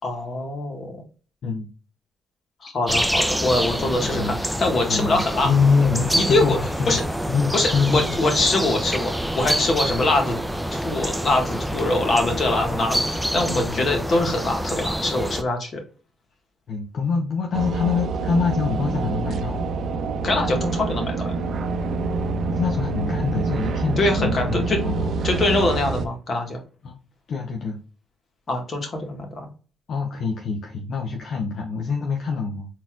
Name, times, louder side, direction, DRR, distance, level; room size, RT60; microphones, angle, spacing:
voice 1, 0.0-0.9 2.6-5.5 6.1-6.6 6.9-7.0 7.5-10.4 10.7-15.8 20.2-21.3 24.0-24.8 25.2-26.6 28.5-29.5, left 2 dB, 45° left, 3 dB, 1.7 m, -23 dB
sound 1, 2.9-15.4, equal, ahead, 0.5 m, -26 dB
voice 2, 3.8-4.3 4.9-7.0 7.3-8.2 13.5-13.9 15.2-15.3 16.7-19.7 22.6-25.1 26.8-27.0 27.3-27.8 29.9-32.7, left 5 dB, 65° left, 2 dB, 0.8 m, -25 dB
sound 2, 17.5-26.1, right 4 dB, 60° right, 0.5 m, -26 dB
4.2 x 4.1 x 2.4 m, 0.36 s
cardioid pair, 90°, 0 cm